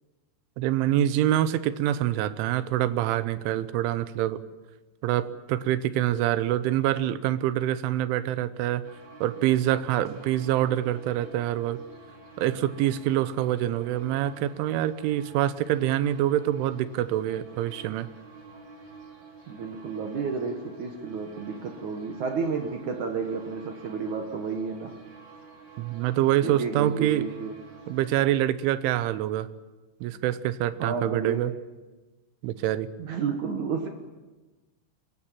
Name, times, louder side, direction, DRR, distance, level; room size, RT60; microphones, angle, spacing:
voice 1, 0.6-4.4 5.0-8.8 9.2-11.8 12.4-18.1 25.8-27.3 27.9-29.5 30.0-31.5 32.4-32.9, right 12 dB, 85° right, 14 dB, 3.3 m, -25 dB
sound 1, 8.8-28.2, right 3 dB, 30° right, 4.9 m, -49 dB
voice 2, 19.5-25.0 26.4-27.5 30.8-31.5 33.0-33.9, right 5 dB, 65° right, 4 dB, 2.0 m, -31 dB
24.5 x 21.0 x 7.5 m, 1.2 s
omnidirectional pair, 5.5 m